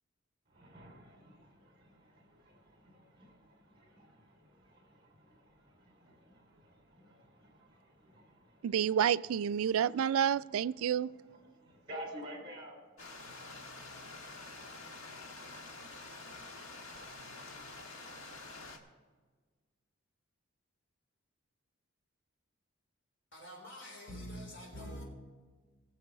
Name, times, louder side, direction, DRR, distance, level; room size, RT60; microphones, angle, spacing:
voice 1, 0.5-8.7 11.6-12.8, equal, 25° right, 3.6 m, -51 dB
voice 2, 8.6-11.1, right 9 dB, 85° right, 0.3 m, -29 dB
Stream, 13.0-18.8, left 3 dB, 85° left, 1.6 m, -48 dB
voice 3, 23.3-25.0, equal, 60° left, 3.9 m, -45 dB
19.0 x 7.4 x 4.8 m
head